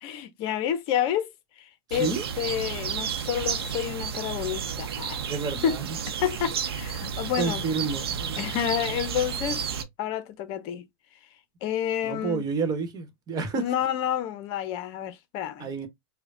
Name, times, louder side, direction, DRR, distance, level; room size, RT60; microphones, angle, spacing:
voice 1, 0.0-1.3 1.6-5.2 5.6-5.8 6.1-7.6 8.4-9.6 10.0-10.8 11.6-12.4 13.5-15.7, left 10 dB, 45° left, 0.7 m, -29 dB
sound 1, 1.9-9.8, right 7 dB, 75° right, 0.7 m, -32 dB
voice 2, 5.3-6.0 7.0-7.1 7.4-8.4 12.0-13.7 15.6-15.9, right 4 dB, 30° right, 1.2 m, -30 dB
5.0 x 2.2 x 2.6 m
hypercardioid pair, 100°, 13 cm